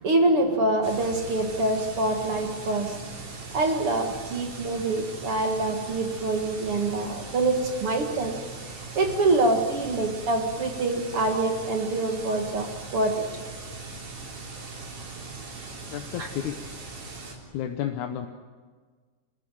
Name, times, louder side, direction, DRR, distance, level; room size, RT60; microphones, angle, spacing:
voice 1, 0.0-3.2 3.5-8.4 8.8-13.3 16.2-16.3, right 2 dB, 50° right, 3 dB, 2.4 m, -25 dB
sound 1, 0.8-17.4, right 3 dB, 65° right, 5.3 m, -40 dB
voice 2, 15.9-16.6 17.5-18.3, left 10 dB, 70° left, 5 dB, 2.3 m, -31 dB
27.5 x 15.0 x 9.1 m, 1.5 s
omnidirectional pair, 3.7 m